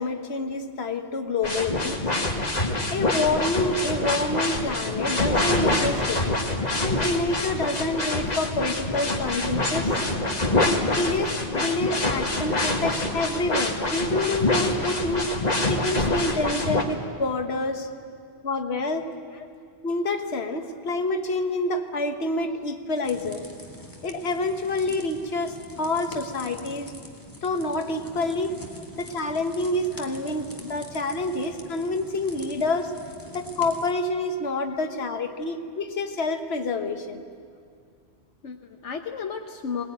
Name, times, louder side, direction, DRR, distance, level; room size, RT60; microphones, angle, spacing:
voice 1, 0.0-1.9 2.9-6.2 6.8-9.9 10.9-15.3 15.7-17.9 18.4-19.1 19.8-23.4 24.0-26.9 27.4-28.6 29.0-32.9 33.3-37.2, left 2 dB, 60° left, 6 dB, 1.6 m, -27 dB
sound 1, 1.4-16.8, left 2 dB, 35° left, 1.9 m, -25 dB
sound 2, 23.0-33.9, left 1 dB, 15° left, 2.1 m, -44 dB
voice 2, 38.4-39.8, left 6 dB, 80° left, 4 dB, 1.3 m, -34 dB
21.0 x 20.0 x 9.3 m, 2.2 s
omnidirectional pair, 1.2 m